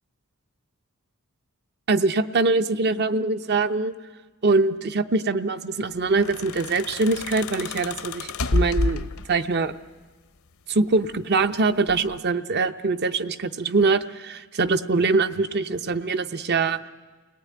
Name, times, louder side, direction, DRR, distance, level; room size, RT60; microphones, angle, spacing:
voice 1, 1.9-3.9 4.4-9.7 10.7-16.8, right 3 dB, 50° right, 11 dB, 0.7 m, -23 dB
sound 1, 6.0-9.6 10.7-11.5 11.9-12.2, left 3 dB, 75° left, 0.7 m, -29 dB
29.5 x 18.5 x 9.4 m, 1.4 s
head